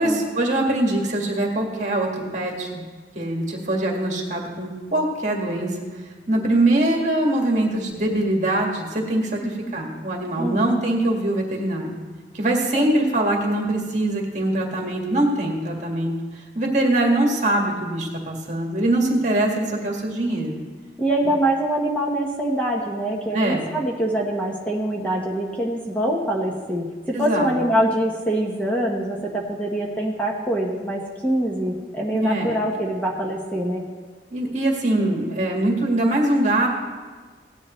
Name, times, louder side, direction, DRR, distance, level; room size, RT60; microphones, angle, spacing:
voice 1, 0.0-2.8 3.1-5.7 6.3-12.0 12.3-16.1 16.5-20.6 23.3-23.6 27.1-27.5 32.1-32.8 34.3-36.7, right 1 dB, 40° right, 0 dB, 1.9 m, -23 dB
voice 2, 9.4-9.8 10.4-10.8 12.7-12.8 21.0-33.8, right 1 dB, 10° left, -1 dB, 1.1 m, -24 dB
17.5 x 10.5 x 3.2 m, 1.4 s
head